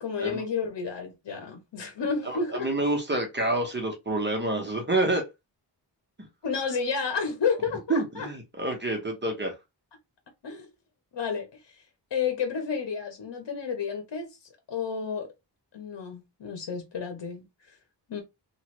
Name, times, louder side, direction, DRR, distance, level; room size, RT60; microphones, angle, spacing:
voice 1, 0.0-2.7 6.4-8.3 10.4-10.7 11.1-11.8 12.1-14.4 14.7-15.3 15.7-17.8 18.1-18.2, left 5 dB, 75° left, 0.9 m, -31 dB
voice 2, 2.3-5.3 7.9-9.5, right 2 dB, 25° right, 1.0 m, -28 dB
3.1 x 2.5 x 3.0 m
wide cardioid pair, 120°, 42 cm